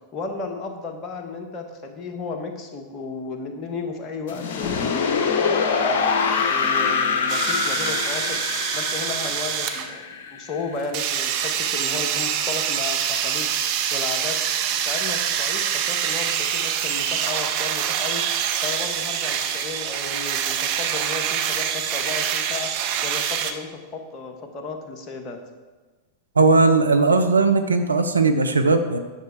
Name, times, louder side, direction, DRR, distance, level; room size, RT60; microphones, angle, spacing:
voice 1, 0.1-8.4 8.7-13.5 13.9-14.4 14.7-18.2 18.6-22.7 23.0-25.4, left 4 dB, 30° left, 3 dB, 1.4 m, -34 dB
sound 1, 4.3-11.2, left 5 dB, 55° left, 0.8 m, -24 dB
sound 2, 7.3-9.9 10.9-23.5, right 9 dB, 45° right, 0.7 m, -25 dB
voice 2, 26.4-29.0, right 3 dB, 80° right, 6 dB, 0.7 m, -18 dB
10.0 x 6.7 x 4.8 m, 1.3 s
figure-of-eight pair, 90°, 0 cm